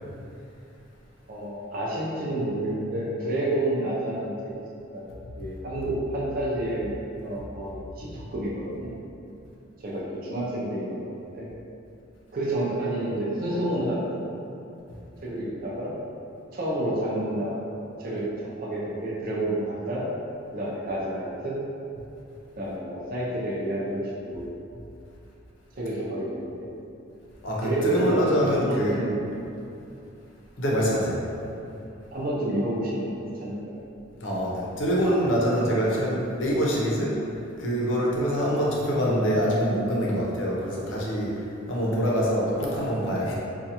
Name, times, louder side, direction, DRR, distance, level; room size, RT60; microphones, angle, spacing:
voice 1, 1.3-4.3 4.9-5.1 5.4-8.9 9.8-11.5 12.3-14.2 15.2-15.9 16.5-17.6 18.0-20.0 20.5-21.6 22.6-24.0 24.3-24.5 25.7-26.7 27.6-29.2 32.1-33.7, right 1 dB, 45° right, -5 dB, 0.5 m, -29 dB
voice 2, 27.4-29.0 30.6-31.2 34.2-37.1 37.6-41.3 41.7-43.4, equal, 65° left, -5 dB, 0.7 m, -25 dB
4.2 x 2.3 x 2.8 m, 2.7 s
head